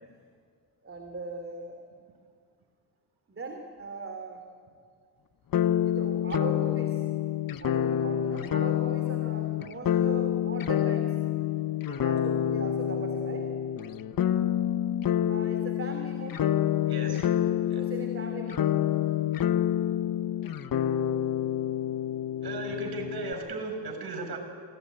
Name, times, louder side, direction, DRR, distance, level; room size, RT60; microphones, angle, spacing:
voice 1, 0.8-1.8 3.3-4.4 5.8-7.0 7.6-11.2 11.8-13.5 15.3-16.5 17.7-18.7, right 2 dB, 25° right, 5 dB, 3.1 m, -39 dB
sound 1, 5.5-23.3, left 10 dB, 45° left, 1.1 m, -28 dB
voice 2, 16.9-17.4 17.7-17.9 22.4-24.4, right 2 dB, 55° right, 4 dB, 6.6 m, -36 dB
27.0 x 18.0 x 9.4 m, 2.1 s
supercardioid pair, 65°, 46 cm